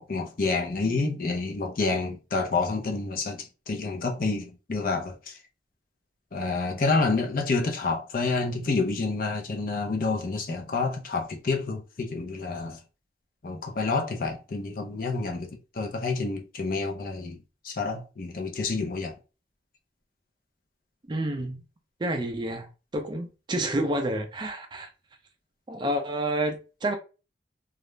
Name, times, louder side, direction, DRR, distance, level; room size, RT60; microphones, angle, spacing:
voice 1, 0.0-5.3 6.3-12.8 13.4-15.5 15.8-17.4 17.6-19.1, left 3 dB, 50° left, 0.5 m, -28 dB
voice 2, 21.1-21.6 22.0-22.7 22.9-24.9 25.7-26.9, right 1 dB, 25° right, 0.4 m, -29 dB
2.3 x 2.0 x 3.1 m
head